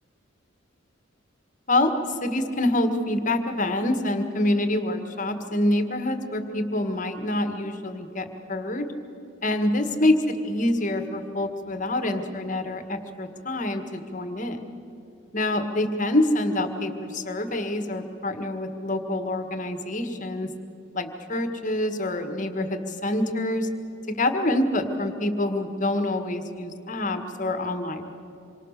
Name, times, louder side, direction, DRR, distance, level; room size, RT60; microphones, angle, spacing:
voice 1, 1.7-8.9 9.4-14.6 15.3-20.5 20.9-23.7 24.1-28.2, left 1 dB, 40° left, 7 dB, 1.7 m, -26 dB
27.0 x 24.5 x 6.7 m, 3.0 s
head